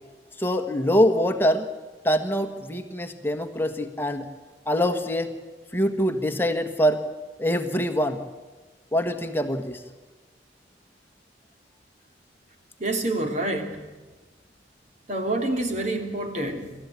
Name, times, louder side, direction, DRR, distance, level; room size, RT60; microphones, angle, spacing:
voice 1, 0.4-1.7 2.0-4.3 4.7-5.3 5.7-7.0 7.4-8.2 8.9-9.8, equal, 10° left, 7 dB, 1.5 m, -24 dB
voice 2, 12.8-13.8 15.1-16.7, right 2 dB, 40° right, 4 dB, 3.1 m, -27 dB
26.5 x 13.5 x 8.5 m, 1.3 s
head